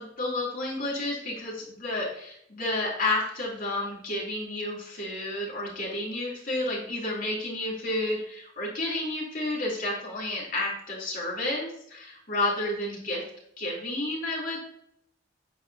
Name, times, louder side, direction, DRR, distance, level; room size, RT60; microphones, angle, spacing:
voice 1, 0.0-13.2 13.6-14.6, left 2 dB, 45° left, -4 dB, 3.3 m, -31 dB
9.3 x 7.6 x 2.8 m, 0.73 s
head